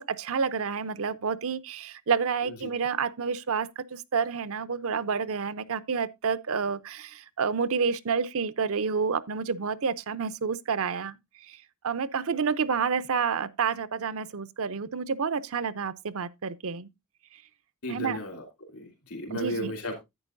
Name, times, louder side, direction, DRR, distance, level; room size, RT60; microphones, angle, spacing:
voice 1, 0.0-11.2 11.5-11.6 11.8-16.9 17.9-18.2 19.3-19.7, right 6 dB, 65° right, 0.6 m, -29 dB
voice 2, 17.8-18.4 18.7-20.0, equal, 70° left, 3.2 m, -35 dB
11.0 x 9.0 x 2.6 m
head